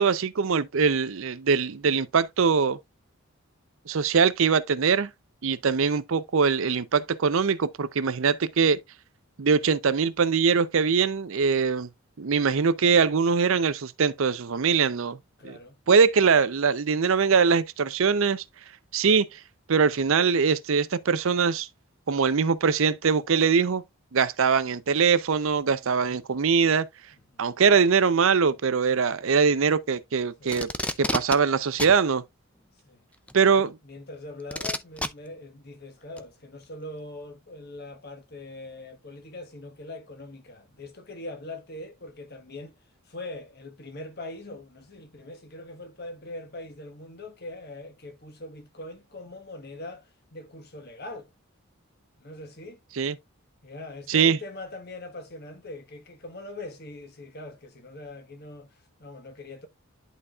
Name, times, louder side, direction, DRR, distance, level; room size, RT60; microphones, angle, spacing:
voice 1, 0.0-2.8 3.9-5.1 5.4-8.8 9.4-11.9 12.2-15.2 15.4-15.5 15.9-18.4 18.9-19.4 19.7-21.7 22.1-23.8 24.1-26.8 27.4-30.7 31.1-32.2 33.3-33.7 53.0-53.1 54.1-54.4, right 5 dB, 65° right, 0.5 m, -22 dB
voice 2, 15.4-15.8 25.7-26.2 27.3-27.4 30.4-30.6 32.8-33.0 33.5-42.7 43.1-51.3 52.2-52.8 53.6-59.7, left 2 dB, 45° left, 1.2 m, -42 dB
Packing tape duct tape, 30.5-31.4 31.8-32.0 33.3-33.4 34.5-35.1 36.2-36.3, left 1 dB, 5° left, 0.3 m, -29 dB
11.0 x 4.0 x 2.4 m
head